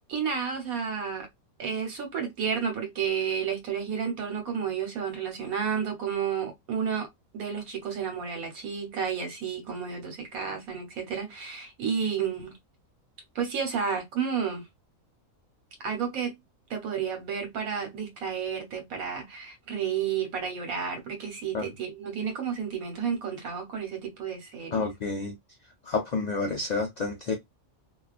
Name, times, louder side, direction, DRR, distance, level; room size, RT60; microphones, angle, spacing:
voice 1, 0.1-1.3 1.6-7.1 7.3-12.5 13.3-14.6 15.8-16.4 16.7-24.9, right 7 dB, 85° right, 1.4 m, -31 dB
voice 2, 24.7-25.3 25.9-27.3, left 4 dB, 85° left, 0.3 m, -29 dB
2.8 x 2.2 x 2.3 m
omnidirectional pair, 1.4 m